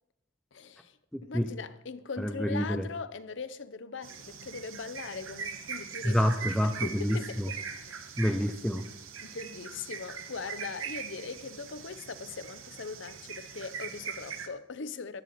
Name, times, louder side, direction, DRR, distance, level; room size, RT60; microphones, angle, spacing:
voice 1, 0.5-1.0 1.2-6.2 6.6-7.6 7.8-8.2 9.2-15.2, left 4 dB, 65° left, 0.7 m, -40 dB
voice 2, 1.1-1.5 2.2-2.9 6.0-7.5 8.2-8.8, equal, ahead, 0.4 m, -28 dB
sound 1, 4.0-14.5, right 6 dB, 85° right, 1.1 m, -41 dB
14.0 x 10.5 x 4.2 m
head